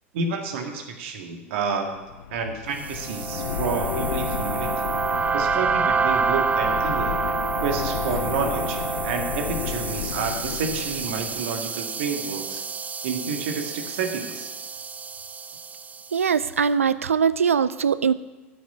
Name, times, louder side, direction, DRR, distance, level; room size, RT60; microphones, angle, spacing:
voice 1, 0.1-1.9 2.3-4.7 5.3-7.2 7.6-12.6 13.0-14.5, right 5 dB, 60° right, 4 dB, 1.8 m, -30 dB
sound 1, 1.9-11.5, left 11 dB, 70° left, 0.5 m, -33 dB
sound 2, 2.8-16.2, right 5 dB, 20° right, 0.5 m, -28 dB
voice 2, 16.1-18.1, right 6 dB, 80° right, 16 dB, 0.4 m, -21 dB
13.0 x 6.5 x 8.5 m, 1.1 s
figure-of-eight pair, 80°, 7 cm